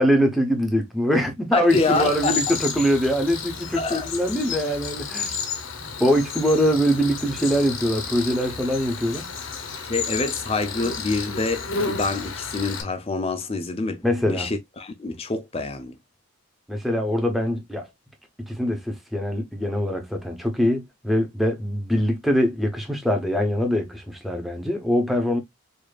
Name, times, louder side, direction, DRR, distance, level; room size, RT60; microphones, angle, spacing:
voice 1, 0.0-5.4 5.8-9.3 14.0-14.5 16.7-17.9 18.4-25.4, equal, ahead, 0.8 m, -23 dB
voice 2, 1.5-2.5 3.7-4.1 9.8-16.0, left 3 dB, 25° left, 0.5 m, -26 dB
Cricket, 1.7-12.8, left 5 dB, 70° left, 1.0 m, -32 dB
4.9 x 2.6 x 2.3 m
head